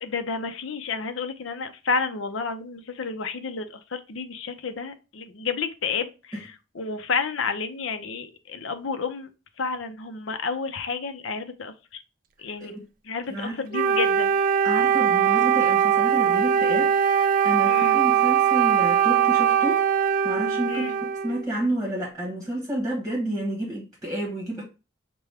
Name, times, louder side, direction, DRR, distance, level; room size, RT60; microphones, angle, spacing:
voice 1, 0.0-9.3 9.6-11.7 12.4-12.7 13.0-14.4 17.7-18.0 20.7-21.0, left 5 dB, 80° left, 0.6 m, -30 dB
voice 2, 13.3-13.6 14.6-19.8 20.2-20.8 21.2-24.6, right 1 dB, ahead, 1.3 m, -30 dB
Wind instrument woodwind instrument, 13.7-21.4, right 8 dB, 45° right, 0.3 m, -21 dB
5.9 x 2.2 x 3.4 m
head